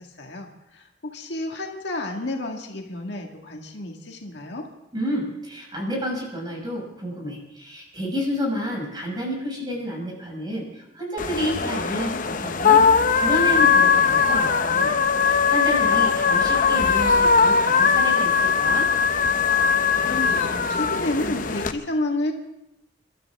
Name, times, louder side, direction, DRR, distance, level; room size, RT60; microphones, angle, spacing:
voice 1, 0.0-4.7 20.0-22.3, left 1 dB, 65° left, 2 dB, 1.9 m, -30 dB
voice 2, 4.9-14.9 15.2-18.9, equal, 25° right, -1 dB, 5.9 m, -30 dB
sound 1, 11.2-21.7, left 5 dB, 45° left, 0.8 m, -20 dB
29.5 x 13.0 x 3.6 m, 0.88 s
head